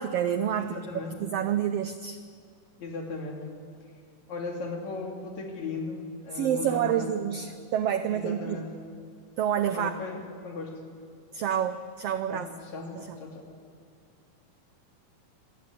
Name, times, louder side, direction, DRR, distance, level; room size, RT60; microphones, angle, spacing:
voice 1, 0.0-0.8 1.2-2.2 6.3-8.6 9.4-9.9 11.3-12.5 12.9-13.1, right 9 dB, 85° right, 10 dB, 1.3 m, -28 dB
voice 2, 0.6-1.2 2.8-3.5 4.3-7.1 8.1-8.7 9.7-10.8 12.3-13.5, left 3 dB, 60° left, 2 dB, 3.9 m, -37 dB
26.0 x 14.5 x 9.8 m, 2.2 s
omnidirectional pair, 3.7 m